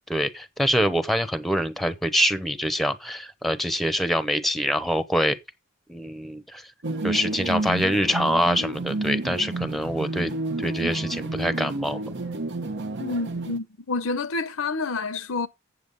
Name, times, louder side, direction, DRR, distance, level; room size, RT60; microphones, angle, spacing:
voice 1, 0.1-5.4 5.9-6.7 7.0-12.0, equal, ahead, 0.9 m, -25 dB
sound 1, 6.8-13.6, right 2 dB, 55° right, 0.9 m, -30 dB
voice 2, 13.0-15.5, left 3 dB, 70° left, 0.7 m, -28 dB
8.1 x 8.0 x 5.3 m
head